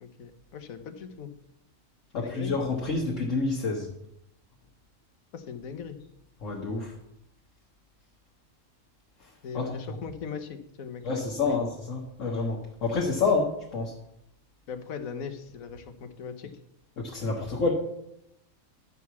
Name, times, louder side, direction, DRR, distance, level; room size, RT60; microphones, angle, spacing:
voice 1, 0.0-1.3 2.1-2.5 5.3-6.0 9.4-11.6 14.7-16.5, left 6 dB, 90° left, 9 dB, 1.4 m, -39 dB
voice 2, 2.1-3.9 6.4-6.9 9.5-10.0 11.0-13.9 17.0-17.7, left 4 dB, 65° left, -2 dB, 1.6 m, -28 dB
11.0 x 4.7 x 7.0 m, 0.79 s
omnidirectional pair, 1.4 m